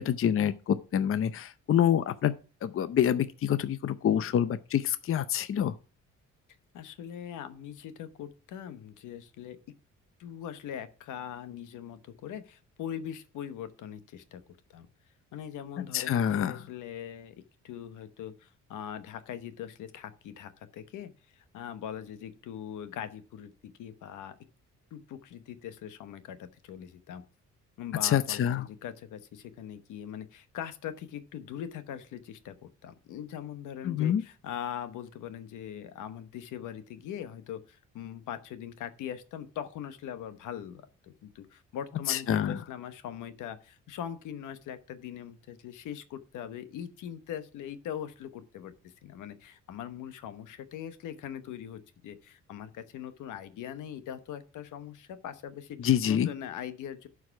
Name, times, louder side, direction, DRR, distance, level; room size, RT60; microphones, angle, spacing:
voice 1, 0.0-2.3 2.6-5.8 15.8-16.6 28.0-28.7 33.8-34.2 42.1-42.6 55.8-56.3, left 9 dB, 45° left, 0.6 m, -27 dB
voice 2, 6.7-9.6 10.2-14.4 14.7-14.9 15.3-17.4 17.6-24.4 24.9-27.2 27.8-57.1, left 9 dB, 85° left, 1.1 m, -41 dB
11.0 x 4.8 x 5.8 m
cardioid pair, 90°, 30 cm